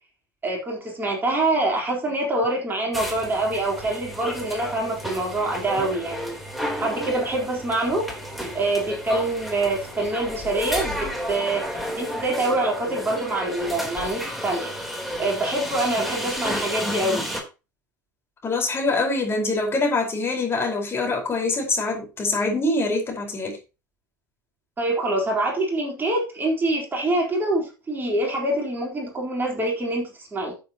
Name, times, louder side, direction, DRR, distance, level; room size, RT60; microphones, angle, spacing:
voice 1, 0.4-6.4 6.8-8.1 8.5-14.7 15.2-17.3 24.8-30.5, right 2 dB, 20° right, -1 dB, 4.0 m, -25 dB
sound 1, 2.9-17.4, equal, ahead, 3.6 m, -32 dB
voice 2, 18.4-23.6, left 3 dB, 25° left, 1 dB, 4.7 m, -24 dB
13.5 x 7.5 x 3.0 m, 0.30 s
figure-of-eight pair, 80°, 10 cm